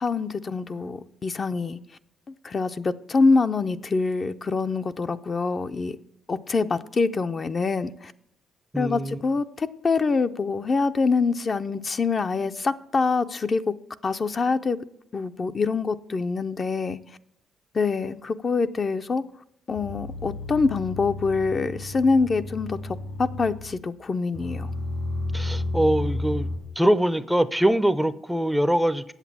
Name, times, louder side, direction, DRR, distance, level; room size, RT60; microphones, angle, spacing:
voice 1, 0.0-1.8 2.4-6.0 6.3-8.1 8.8-13.7 14.0-14.8 15.1-17.0 17.7-19.2 19.7-24.7, left 4 dB, 40° left, 9 dB, 0.6 m, -25 dB
voice 2, 8.7-9.2 25.3-26.5 26.8-29.0, right 1 dB, 5° right, 14 dB, 0.5 m, -23 dB
sound 1, 19.7-23.9 24.3-26.6, left 2 dB, 75° left, 4.5 m, -32 dB
8.2 x 7.8 x 7.3 m, 0.74 s
cardioid pair, 90°, 0 cm